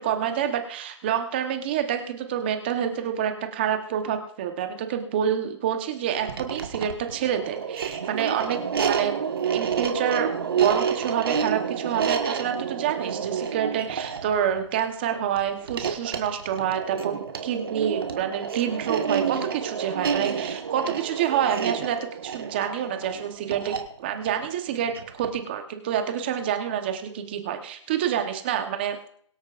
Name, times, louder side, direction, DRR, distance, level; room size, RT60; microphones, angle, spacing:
voice 1, 0.0-9.2 9.5-10.3 10.6-17.2 17.4-23.7 24.0-29.1, right 9 dB, 20° right, 6 dB, 1.0 m, -27 dB
sound 1, 6.2-25.5, right 7 dB, 50° right, 1.6 m, -29 dB
23.0 x 8.6 x 2.5 m, 0.62 s
hypercardioid pair, 170°, 16 cm